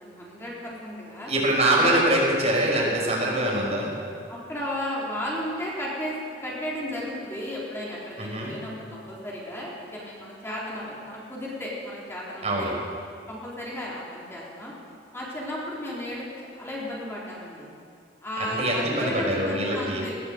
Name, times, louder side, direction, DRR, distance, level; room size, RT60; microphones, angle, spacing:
voice 1, 0.0-1.3 1.8-1.9 4.3-12.8 13.3-14.7 15.1-16.3 16.5-17.7 18.2-20.1, left 1 dB, 15° left, -6 dB, 4.0 m, -34 dB
voice 2, 1.3-3.9 8.2-8.5 12.4-12.7 18.4-20.0, right 1 dB, 40° right, -2 dB, 5.3 m, -24 dB
19.5 x 17.5 x 8.0 m, 2.4 s
head